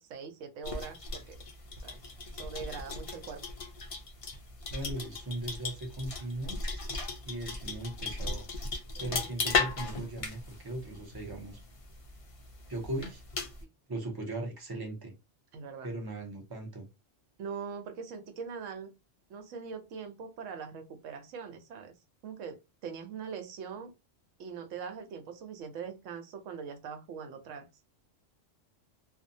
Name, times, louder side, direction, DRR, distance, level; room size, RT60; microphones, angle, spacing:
voice 1, 0.0-1.4 1.8-2.0 2.3-3.4 6.7-7.0 8.9-9.3 15.5-15.9 17.4-18.9 19.3-21.9 22.2-23.9 24.4-27.7, right 6 dB, 80° right, 1.0 m, -42 dB
sound 1, 0.6-13.6, left 4 dB, 65° left, 0.3 m, -37 dB
voice 2, 4.7-6.6 7.3-8.5 9.0-11.6 12.7-13.2 13.9-15.1 15.8-16.9, right 1 dB, 30° right, 0.5 m, -38 dB
2.6 x 2.1 x 2.6 m
omnidirectional pair, 1.3 m